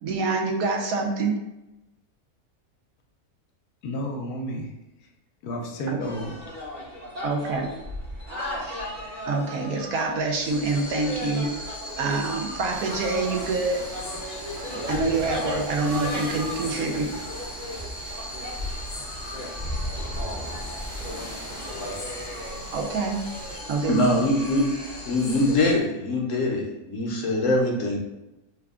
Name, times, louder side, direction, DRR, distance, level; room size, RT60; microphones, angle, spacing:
voice 1, 0.0-1.4 5.9-6.0 7.2-7.7 9.3-13.8 14.9-17.1 22.7-23.2 23.7-24.0, right 3 dB, 75° right, 1.0 m, -26 dB
voice 2, 3.8-4.7 5.0-5.1 5.4-6.5, equal, 85° left, 1.1 m, -31 dB
sound 1, 6.0-25.8, left 1 dB, 35° right, 0.9 m, -36 dB
sound 2, 10.4-25.7, left 1 dB, 40° left, 0.7 m, -39 dB
sound 3, 12.7-23.6, right 1 dB, 55° right, 1.3 m, -40 dB
voice 3, 23.9-24.7 25.0-28.0, left 1 dB, 65° left, 1.0 m, -23 dB
3.5 x 2.2 x 3.5 m
omnidirectional pair, 1.6 m